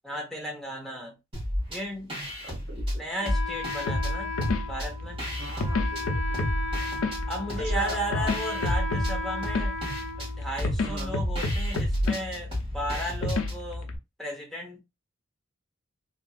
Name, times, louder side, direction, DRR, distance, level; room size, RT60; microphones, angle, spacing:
voice 1, 0.0-1.2 1.7-2.1 3.0-4.3 4.7-5.2 7.3-9.8 10.2-13.9 14.2-14.8, equal, ahead, 0.7 m, -34 dB
sound 1, 1.3-1.8 2.1-4.1 4.4-6.0 6.3-13.6, equal, 25° right, 1.4 m, -33 dB
voice 2, 2.4-3.0 5.3-6.6 7.6-8.4 10.8-11.2, right 2 dB, 50° right, 1.5 m, -40 dB
Wind instrument woodwind instrument, 3.2-10.9, left 3 dB, 75° right, 1.1 m, -36 dB
sound 2, 3.9-14.0, left 1 dB, 85° left, 0.5 m, -30 dB
2.9 x 2.5 x 2.3 m
head